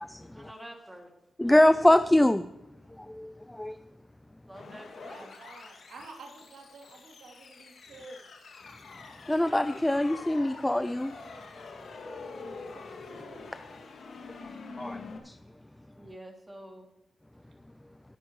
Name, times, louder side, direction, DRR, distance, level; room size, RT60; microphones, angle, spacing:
voice 1, 0.3-1.1 1.4-1.8 4.5-5.3 9.3-9.5 16.0-16.9, right 1 dB, 10° right, 1 dB, 2.5 m, -48 dB
voice 2, 1.4-2.5 3.0-3.8 9.3-11.1 14.8-15.4, left 1 dB, 10° left, 11 dB, 0.4 m, -24 dB
sound 1, 4.5-15.2, left 4 dB, 70° left, 2.2 m, -45 dB
voice 3, 5.0-8.2 12.7-13.5 14.8-14.9, right 3 dB, 85° right, 0 dB, 2.8 m, -50 dB
21.5 x 8.9 x 3.1 m, 0.91 s
wide cardioid pair, 105°, 0 cm